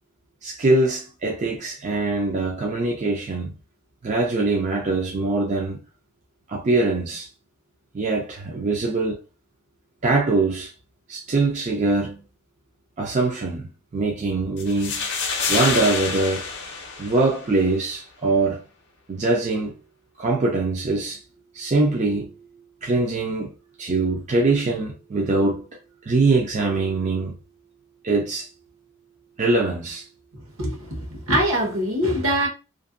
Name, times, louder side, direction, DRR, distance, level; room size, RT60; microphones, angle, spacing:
voice 1, 0.4-3.6 4.0-5.8 6.5-7.3 7.9-9.2 10.0-10.7 11.1-12.2 13.0-15.1 15.5-16.5 17.0-18.6 19.1-19.7 20.2-21.2 21.5-22.3 22.8-23.5 23.8-25.6 26.0-27.4 28.0-28.5 29.4-30.1, right 3 dB, 35° right, 0.4 m, -23 dB
sound 1, 14.6-17.6, left 5 dB, 55° left, 0.6 m, -27 dB
voice 2, 30.6-32.5, equal, 70° right, 1.0 m, -23 dB
2.6 x 2.5 x 2.5 m
head